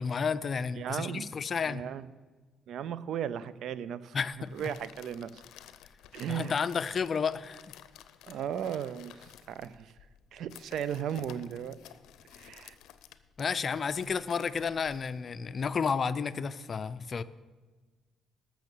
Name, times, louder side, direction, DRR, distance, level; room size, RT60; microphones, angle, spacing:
voice 1, 0.0-1.8 4.1-4.7 6.3-7.6 13.4-17.2, left 6 dB, 45° left, 14 dB, 0.5 m, -31 dB
voice 2, 0.7-1.3 1.6-2.1 2.7-4.2 4.5-5.4 6.1-6.6 8.3-10.0 10.3-11.8 12.3-12.8, right 9 dB, 75° right, 17 dB, 0.5 m, -36 dB
sound 1, 4.3-15.7, left 10 dB, 90° left, 0.6 m, -53 dB
13.5 x 6.3 x 6.8 m, 1.3 s
cardioid pair, 90°, 0 cm